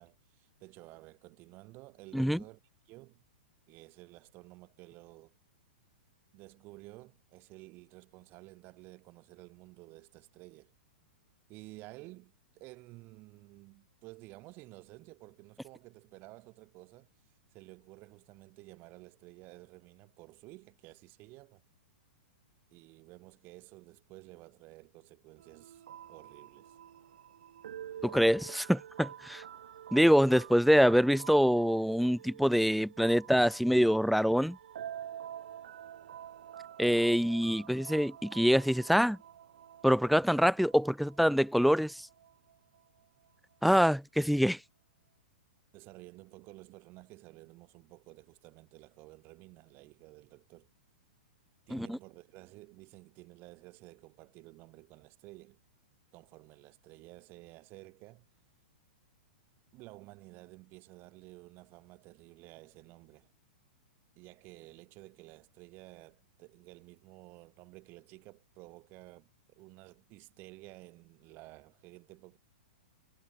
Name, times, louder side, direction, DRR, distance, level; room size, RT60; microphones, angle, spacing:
voice 1, 0.0-2.6 2.9-3.2 3.7-5.3 6.3-10.7 11.5-17.1 17.5-21.6 22.7-26.8 45.7-50.7 51.7-55.6 56.1-58.3 59.7-63.3 64.2-72.4, right 22 dB, 40° right, 3.7 m, -53 dB
sound 1, 25.4-42.8, right 10 dB, 70° right, 3.5 m, -48 dB
voice 2, 28.0-29.4 29.9-34.6 36.8-39.2 39.8-42.0 43.6-44.6 51.7-52.0, equal, ahead, 0.3 m, -25 dB
hypercardioid pair, 115°, 6 cm